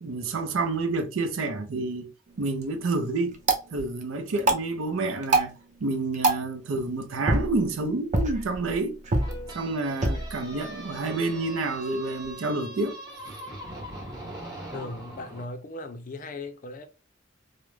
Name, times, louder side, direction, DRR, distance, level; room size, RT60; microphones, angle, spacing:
voice 1, 0.0-3.4 3.7-9.0 9.5-13.0, right 3 dB, 85° right, 0.5 m, -29 dB
sound 1, 2.3-12.4, right 2 dB, 35° right, 0.5 m, -30 dB
sound 2, 9.2-15.4, right 1 dB, 20° right, 0.9 m, -41 dB
voice 2, 14.7-16.9, left 2 dB, 40° left, 0.4 m, -38 dB
2.4 x 2.0 x 3.0 m
head